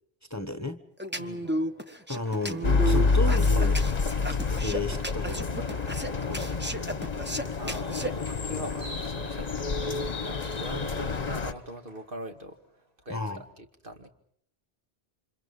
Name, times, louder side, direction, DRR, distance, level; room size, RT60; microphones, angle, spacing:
voice 1, 0.3-0.8 2.1-5.5 6.3-6.4 13.1-13.4, left 2 dB, 15° left, 7 dB, 1.2 m, -33 dB
sound 1, 1.0-8.1, right 1 dB, 10° right, 1.2 m, -33 dB
voice 2, 1.2-1.5 7.2-7.9 8.3-12.6 13.1-14.1, right 1 dB, 55° right, 4 dB, 2.5 m, -42 dB
Applause, 1.4-13.3, right 1 dB, 40° right, 5.9 m, -53 dB
sound 2, 2.6-11.5, left 4 dB, 40° left, 1.2 m, -28 dB
29.0 x 26.5 x 5.5 m, 0.68 s
omnidirectional pair, 1.0 m